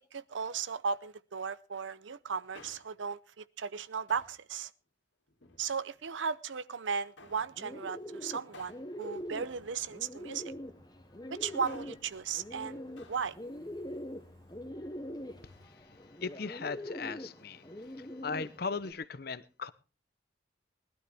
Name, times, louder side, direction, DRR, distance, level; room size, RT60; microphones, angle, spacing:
voice 1, 0.1-4.7 5.6-10.5 11.3-12.8 13.1-13.4, right 6 dB, 80° right, 0.6 m, -36 dB
Male speech man speaking, 2.3-3.1 4.1-4.5 5.3-6.1 7.2-7.5 8.5-10.2 11.4-12.1 13.0-13.3 13.6-13.7, left 3 dB, 75° left, 2.2 m, -57 dB
Bird, 7.3-18.9, equal, 20° left, 1.1 m, -44 dB
sound 1, 9.2-15.7, left 1 dB, 55° right, 3.3 m, -62 dB
voice 2, 16.2-17.6 18.0-19.7, left 4 dB, 55° left, 0.8 m, -38 dB
20.0 x 12.5 x 3.4 m
head